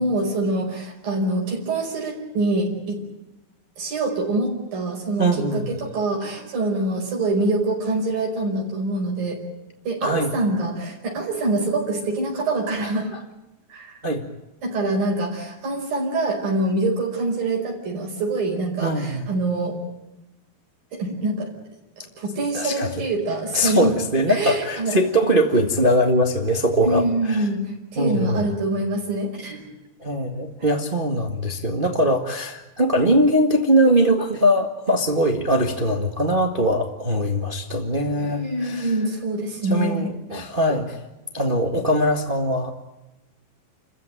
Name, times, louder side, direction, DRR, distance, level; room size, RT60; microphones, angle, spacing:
voice 1, 0.0-3.0 3.8-9.4 9.8-13.1 13.7-14.0 14.6-19.8 20.9-21.5 22.2-23.9 24.3-25.0 26.8-27.6 27.9-29.6 38.2-40.1, right 2 dB, 65° right, 0 dB, 6.9 m, -25 dB
voice 2, 5.2-5.7 10.0-10.3 12.8-13.2 14.0-14.2 18.8-19.3 22.5-22.9 23.5-27.5 28.0-28.4 30.0-38.9 39.7-41.0 41.3-42.7, equal, 85° right, 3 dB, 0.4 m, -21 dB
29.5 x 15.0 x 9.0 m, 0.97 s
omnidirectional pair, 4.3 m